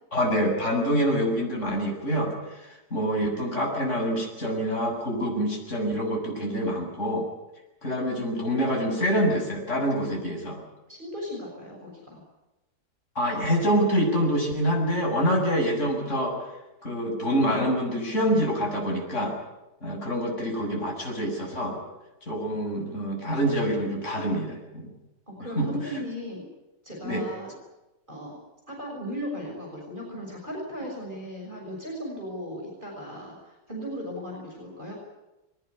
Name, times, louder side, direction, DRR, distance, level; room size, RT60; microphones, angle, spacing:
voice 1, 0.1-7.2 7.8-10.6 13.2-16.3 16.8-19.3 19.8-21.8 22.3-24.9 25.6-25.7 27.0-27.2, equal, 45° left, 0 dB, 7.2 m, -26 dB
voice 2, 10.9-12.2 25.3-26.5 26.8-27.5 28.1-28.3 28.7-34.9, equal, 30° right, -1 dB, 7.0 m, -36 dB
22.5 x 19.5 x 9.7 m, 0.98 s
omnidirectional pair, 1.8 m